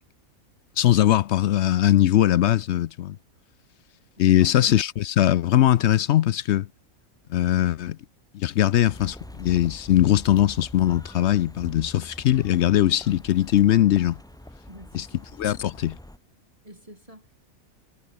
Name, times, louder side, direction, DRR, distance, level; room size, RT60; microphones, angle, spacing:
voice 1, 0.8-3.2 4.2-6.7 7.3-8.0 8.3-14.2 14.9-15.1 15.4-16.0, left 12 dB, 65° left, 0.7 m, -20 dB
voice 2, 4.2-4.6 14.7-15.3 16.6-17.4, right 1 dB, 25° right, 7.7 m, -48 dB
sound 1, 8.9-16.2, left 1 dB, 5° left, 0.4 m, -43 dB
omnidirectional pair, 1.5 m